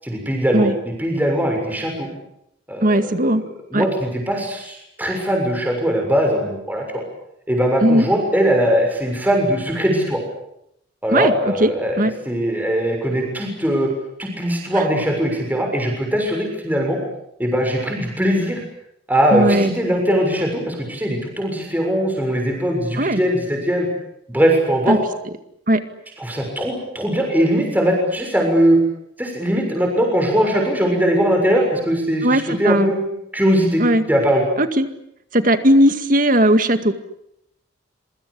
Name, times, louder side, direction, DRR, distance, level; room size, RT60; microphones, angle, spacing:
voice 1, 0.0-2.1 2.7-3.1 3.7-7.0 7.5-10.2 11.0-13.9 14.2-17.0 17.4-18.6 19.1-23.9 24.3-25.0 26.2-28.8 29.2-33.0 33.3-33.8 34.1-34.4, equal, 10° right, 1 dB, 6.7 m, -20 dB
voice 2, 2.8-3.4 3.7-3.9 7.8-8.1 11.1-11.7 12.0-12.1 14.7-14.8 19.3-19.7 23.0-23.2 24.9-25.0 25.7-25.8 32.2-32.9 33.8-34.0 34.6-34.9 35.3-36.9, right 1 dB, 45° right, 9 dB, 2.1 m, -17 dB
27.0 x 24.5 x 8.5 m, 0.77 s
head